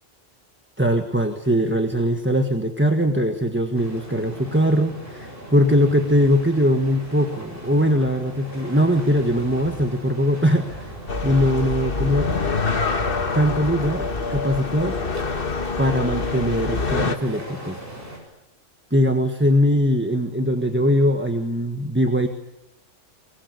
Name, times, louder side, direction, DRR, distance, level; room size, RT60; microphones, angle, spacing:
voice 1, 0.8-10.9 11.2-12.3 13.3-15.0 15.8-17.8 18.9-22.3, equal, 10° right, 5 dB, 1.4 m, -21 dB
sound 1, 3.8-18.2, equal, 45° right, 7.9 m, -39 dB
sound 2, 11.1-17.2, left 4 dB, 45° left, 1.7 m, -25 dB
22.5 x 22.5 x 9.7 m, 0.91 s
omnidirectional pair, 1.3 m